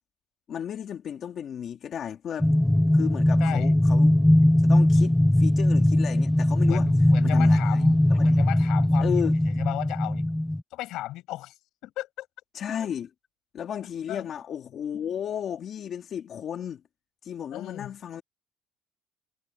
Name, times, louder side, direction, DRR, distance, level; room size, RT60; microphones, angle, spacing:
voice 1, 0.5-2.5 2.9-4.2 4.6-6.9 7.2-7.6 8.1-8.4 9.0-9.3 12.5-13.1 13.5-16.8 17.2-18.2, left 8 dB, 45° left, 2.2 m, -33 dB
sound 1, 2.4-10.6, left 1 dB, 5° left, 0.6 m, -20 dB
voice 2, 3.4-3.7 6.6-10.4 10.7-12.3 14.1-14.3 17.5-17.9, left 16 dB, 65° left, 5.9 m, -36 dB
cardioid pair, 130°, 0 cm